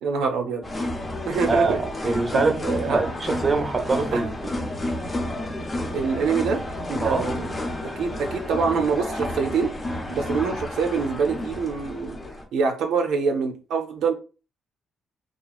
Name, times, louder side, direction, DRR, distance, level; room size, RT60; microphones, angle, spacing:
voice 1, 0.0-0.6 1.3-1.8 2.0-3.0 4.1-4.2 5.9-6.6 6.9-7.6 8.0-9.7 10.1-12.2 12.5-14.1, right 5 dB, 80° right, 0.5 m, -25 dB
sound 1, 0.6-12.4, left 1 dB, 30° left, 0.6 m, -31 dB
voice 2, 1.5-4.5 7.0-7.3, right 3 dB, 30° right, 0.6 m, -24 dB
2.9 x 2.3 x 2.3 m
cardioid pair, 90°, 0 cm